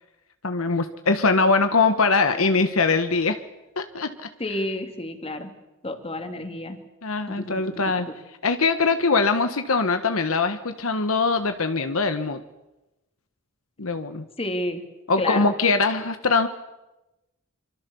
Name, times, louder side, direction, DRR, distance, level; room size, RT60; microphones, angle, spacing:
voice 1, 0.4-3.4 3.8-4.3 7.0-8.1 8.4-12.4 13.8-14.2 15.1-16.5, left 4 dB, 75° left, 8 dB, 1.4 m, -22 dB
voice 2, 4.4-5.5 5.8-6.8 7.3-8.1 14.4-14.8 15.2-15.5, left 1 dB, 30° left, 6 dB, 2.8 m, -30 dB
25.5 x 25.5 x 7.1 m, 1.0 s
head